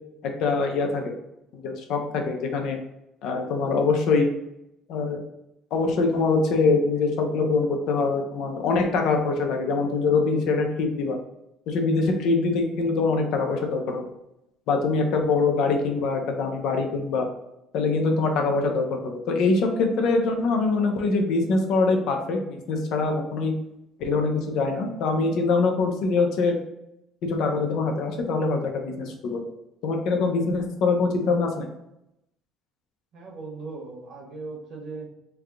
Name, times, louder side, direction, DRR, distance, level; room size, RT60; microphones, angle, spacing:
voice 1, 0.4-1.1 1.6-2.8 3.2-4.3 4.9-5.2 5.7-11.2 11.7-14.0 14.7-17.2 17.7-23.5 24.0-26.5 27.2-29.4 29.8-31.7, left 3 dB, 70° left, 3 dB, 0.7 m, -24 dB
voice 2, 33.1-35.1, right 3 dB, 60° right, 0 dB, 1.2 m, -38 dB
3.4 x 2.2 x 3.6 m, 0.85 s
cardioid pair, 130°, 0 cm